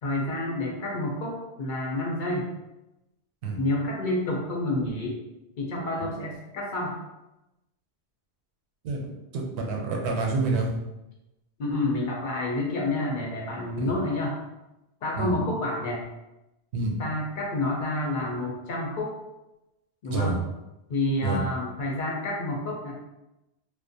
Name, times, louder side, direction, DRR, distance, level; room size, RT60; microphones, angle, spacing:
voice 1, 0.0-2.5 3.6-5.2 5.6-7.0 11.6-14.3 15.0-16.0 17.0-19.1 20.0-20.4 20.9-22.9, left 2 dB, 60° left, -2 dB, 0.6 m, -29 dB
voice 2, 8.8-10.8 13.8-13.9 15.2-15.3 16.7-17.0 20.1-20.3 21.2-21.4, right 3 dB, 85° right, 0 dB, 0.9 m, -28 dB
2.4 x 2.1 x 2.6 m, 0.96 s
omnidirectional pair, 1.1 m